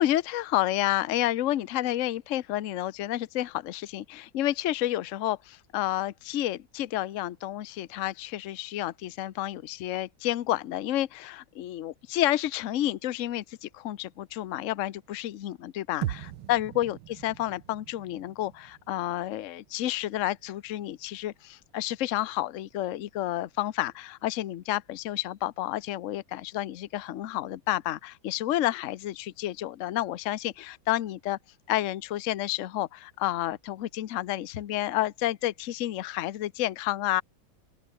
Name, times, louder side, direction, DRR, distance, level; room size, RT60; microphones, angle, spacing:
voice 1, 0.0-31.4 31.7-37.2, left 14 dB, 60° left, 0.8 m, -30 dB
sound 1, 16.0-20.4, right 12 dB, 85° right, 1.9 m, -40 dB
open air
omnidirectional pair, 2.2 m